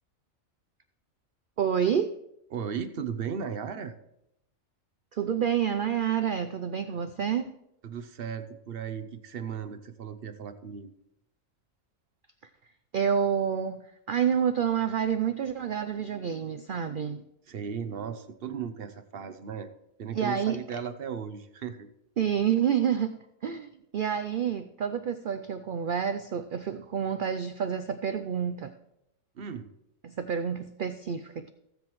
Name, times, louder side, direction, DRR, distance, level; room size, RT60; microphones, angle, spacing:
voice 1, 1.6-2.2 5.1-7.6 12.9-17.2 20.1-20.8 22.2-28.7 30.0-31.5, right 8 dB, 75° right, 10 dB, 0.4 m, -28 dB
voice 2, 2.5-3.9 7.8-10.9 17.5-19.7 20.0-21.9 29.3-29.7, right 7 dB, 50° right, 11 dB, 0.8 m, -36 dB
17.5 x 7.7 x 3.1 m, 0.81 s
omnidirectional pair, 1.5 m